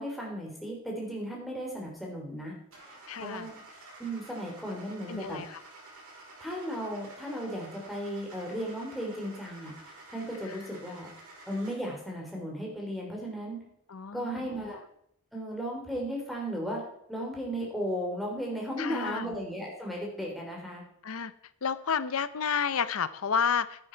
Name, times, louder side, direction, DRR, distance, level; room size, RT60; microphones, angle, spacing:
voice 1, 0.0-2.5 3.2-3.6 4.0-5.4 6.4-11.1 11.5-13.6 14.1-14.8 15.3-16.8 17.1-20.8, equal, ahead, -2 dB, 3.3 m, -35 dB
Car / Engine starting, 2.7-12.0, right 2 dB, 80° right, 5.3 m, -50 dB
voice 2, 3.1-3.5 5.1-5.6 10.5-10.6 13.9-14.8 18.8-19.3 21.0-21.3 21.6-23.9, left 6 dB, 70° left, 15 dB, 0.6 m, -31 dB
10.5 x 9.9 x 4.5 m, 0.71 s
head